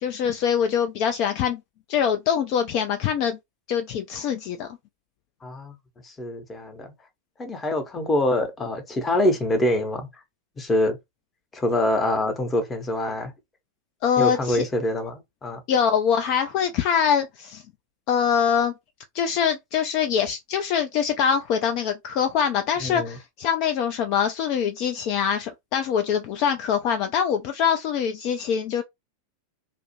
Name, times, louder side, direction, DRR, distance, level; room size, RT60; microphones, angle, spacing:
voice 1, 0.0-1.6 1.9-3.4 3.7-4.7 14.0-14.7 15.7-17.6 18.1-18.7 19.1-28.8, left 7 dB, 45° left, 0.3 m, -24 dB
voice 2, 5.4-5.7 6.0-6.9 7.4-10.1 10.6-11.0 11.5-13.3 14.2-15.6 22.8-23.2, left 1 dB, 15° left, 0.7 m, -25 dB
2.4 x 2.0 x 2.8 m
figure-of-eight pair, 90°, 0 cm